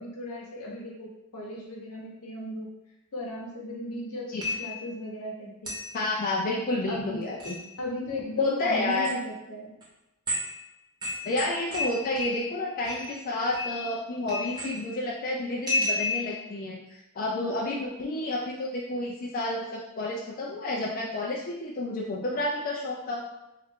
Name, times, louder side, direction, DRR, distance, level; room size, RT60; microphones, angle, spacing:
voice 1, 0.0-2.7 3.1-5.8 6.9-7.2 7.8-9.7 17.6-17.7, left 1 dB, 80° left, -2 dB, 0.8 m, -36 dB
sound 1, 4.4-4.9 5.7-5.9 7.2-7.6 8.9-9.1 9.8-9.9 10.3-10.6 11.0-12.5 12.8-13.2 13.5-14.0 14.3-14.9 15.7-16.4, left 2 dB, 20° right, 0.9 m, -31 dB
voice 2, 5.9-7.6 8.4-9.1 11.2-23.2, left 2 dB, 40° left, -3 dB, 0.3 m, -30 dB
3.0 x 2.4 x 3.5 m, 0.93 s
head